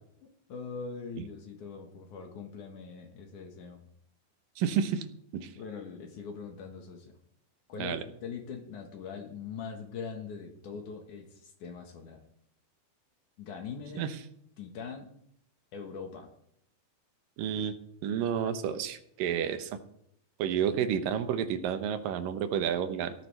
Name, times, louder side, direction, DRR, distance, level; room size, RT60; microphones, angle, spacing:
voice 1, 0.2-3.9 5.6-7.1 7.7-12.2 13.4-14.1 14.6-15.1 15.7-16.3, left 5 dB, 70° left, 3 dB, 2.8 m, -42 dB
voice 2, 4.6-5.1 5.3-5.5 7.8-8.0 14.0-14.2 17.4-17.7 18.0-19.8 20.4-23.1, right 8 dB, 90° right, 10 dB, 2.7 m, -30 dB
16.5 x 13.5 x 3.3 m, 0.72 s
omnidirectional pair, 3.8 m